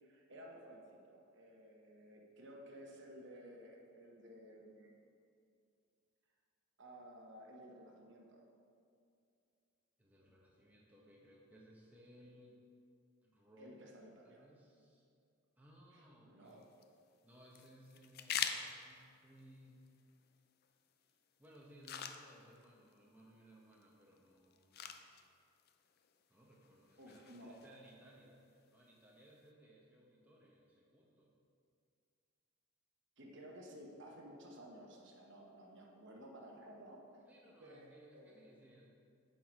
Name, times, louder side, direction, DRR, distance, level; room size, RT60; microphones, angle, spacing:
voice 1, 0.0-5.0 6.8-8.5 13.6-14.5 15.9-16.6 27.0-27.6 33.2-38.5, equal, 55° right, 0 dB, 1.0 m, -55 dB
voice 2, 10.0-12.6 13.2-13.8 14.2-15.0 15.6-16.7 17.2-19.8 21.0-25.1 26.3-31.3 37.3-38.9, right 1 dB, 5° right, -4 dB, 0.9 m, -62 dB
sound 1, 16.5-29.5, left 8 dB, 45° left, 0.4 m, -48 dB
7.6 x 5.8 x 5.1 m, 2.4 s
head